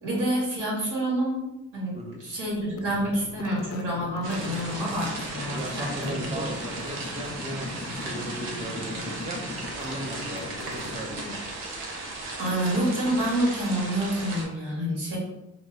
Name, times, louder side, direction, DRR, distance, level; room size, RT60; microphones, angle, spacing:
voice 1, 0.0-1.4 1.7-6.4 12.4-15.2, right 1 dB, 60° right, -5 dB, 1.4 m, -28 dB
sound 1, 2.6-11.6, left 3 dB, 40° left, 0.4 m, -39 dB
sound 2, 4.2-14.4, right 2 dB, 75° right, 0.7 m, -36 dB
voice 2, 5.5-11.4 15.1-15.2, right 2 dB, 20° right, 2 dB, 0.5 m, -37 dB
3.0 x 2.1 x 2.3 m, 0.93 s
supercardioid pair, 55°, 36 cm